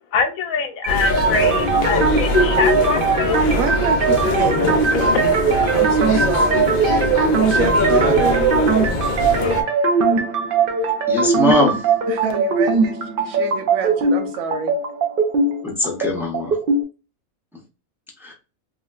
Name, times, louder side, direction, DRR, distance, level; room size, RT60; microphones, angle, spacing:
voice 1, 0.1-3.5 4.9-5.2, left 6 dB, 85° left, 5 dB, 1.0 m, -24 dB
sound 1, 0.8-16.8, right 5 dB, 60° right, 0.6 m, -20 dB
sound 2, 0.9-9.6, left 3 dB, 55° left, 0.5 m, -22 dB
voice 2, 3.5-5.1 5.5-6.7 7.5-8.6 12.1-14.7, right 5 dB, 80° right, 6 dB, 1.1 m, -27 dB
voice 3, 11.1-11.9 15.6-16.6 18.2-18.3, left 1 dB, 5° right, -1 dB, 0.4 m, -20 dB
3.0 x 2.9 x 2.3 m, 0.31 s
omnidirectional pair, 1.4 m